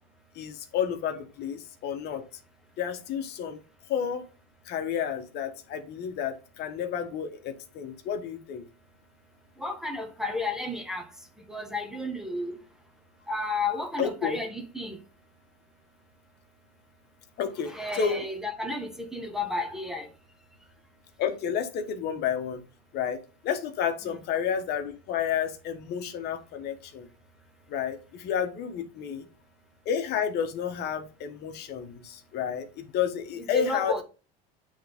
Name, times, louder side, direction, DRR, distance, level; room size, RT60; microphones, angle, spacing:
voice 1, 0.3-2.2 2.8-3.6 3.9-4.2 4.6-8.7 14.0-14.4 17.4-18.2 21.2-22.6 22.9-23.2 23.4-27.1 27.7-29.3 29.8-34.0, left 8 dB, 55° left, 1.3 m, -31 dB
voice 2, 9.6-11.1 11.5-12.6 13.3-15.0 17.6-20.1 24.0-24.1 33.4-34.0, left 2 dB, ahead, 1.3 m, -32 dB
8.5 x 3.6 x 3.6 m
supercardioid pair, 120°, 20 cm